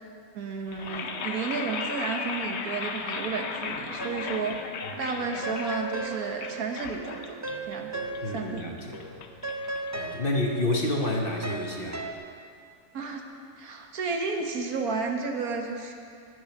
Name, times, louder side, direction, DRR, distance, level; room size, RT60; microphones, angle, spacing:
voice 1, 0.3-4.6 5.0-7.2 7.6-7.9 8.3-8.7 12.9-13.2 13.6-15.9, right 4 dB, 85° right, 3 dB, 1.6 m, -32 dB
sound 1, 0.7-10.7, left 5 dB, 55° left, 0.9 m, -37 dB
sound 2, 4.0-4.7 4.9-8.7 8.9-12.1, right 2 dB, 25° right, 0.3 m, -37 dB
voice 2, 8.2-9.0 10.0-12.0, left 1 dB, 40° left, 1 dB, 1.3 m, -29 dB
10.5 x 10.5 x 6.0 m, 2.4 s
omnidirectional pair, 1.5 m